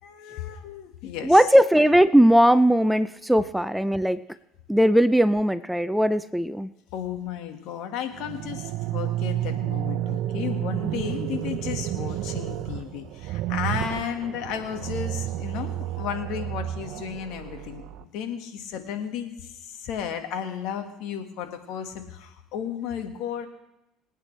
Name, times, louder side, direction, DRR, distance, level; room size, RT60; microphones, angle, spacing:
voice 1, 0.0-1.4 6.9-23.5, left 8 dB, 70° left, 6 dB, 1.8 m, -34 dB
voice 2, 1.2-4.2 4.7-6.7, equal, ahead, 14 dB, 0.5 m, -19 dB
sound 1, 8.1-18.0, right 13 dB, 65° right, 0.7 m, -31 dB
26.0 x 9.0 x 3.4 m, 0.92 s
supercardioid pair, 80°, 0 cm